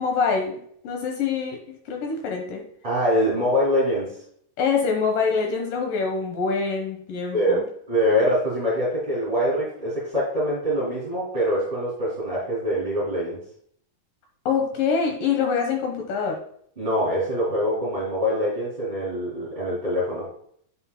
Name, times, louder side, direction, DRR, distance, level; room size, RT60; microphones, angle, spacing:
voice 1, 0.0-2.6 4.6-7.6 14.5-16.4, left 5 dB, 70° left, 2 dB, 2.3 m, -25 dB
voice 2, 2.8-4.1 7.3-7.6 7.9-13.4 16.8-20.3, equal, 15° right, -7 dB, 2.2 m, -24 dB
9.5 x 5.8 x 2.2 m, 0.64 s
omnidirectional pair, 4.6 m